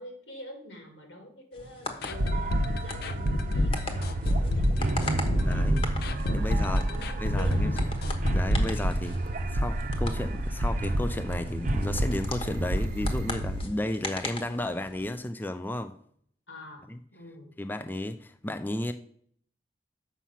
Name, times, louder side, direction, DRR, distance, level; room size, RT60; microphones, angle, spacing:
voice 1, 0.0-5.9 6.3-6.6 6.9-7.9 16.5-17.5, left 1 dB, 85° left, 2 dB, 2.6 m, -46 dB
sound 1, 1.5-15.1, left 2 dB, 30° left, 1.2 m, -41 dB
sound 2, 2.0-9.8 10.0-10.1 10.5-10.6, left 1 dB, 60° left, 0.6 m, -29 dB
sound 3, 2.1-13.7, right 1 dB, 45° right, 0.7 m, -29 dB
voice 2, 5.4-5.9 6.3-6.9 7.2-7.7 8.3-9.2 9.5-15.9 16.9-17.0 17.6-18.9, left 1 dB, 10° left, 9 dB, 0.4 m, -33 dB
7.1 x 6.0 x 5.7 m, 0.62 s
head